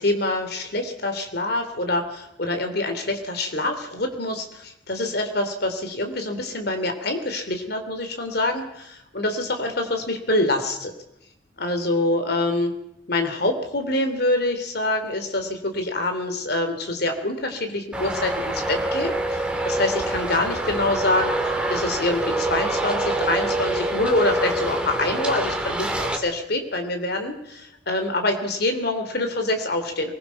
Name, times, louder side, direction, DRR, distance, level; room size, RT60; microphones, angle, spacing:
voice 1, 0.0-10.9 11.6-12.7 13.1-21.3 21.7-30.1, left 2 dB, 60° left, 5 dB, 3.0 m, -25 dB
Traffic noise roadway noise, 17.9-26.2, right 1 dB, 5° right, 2.5 m, -26 dB
23.5 x 20.5 x 5.8 m, 0.84 s
head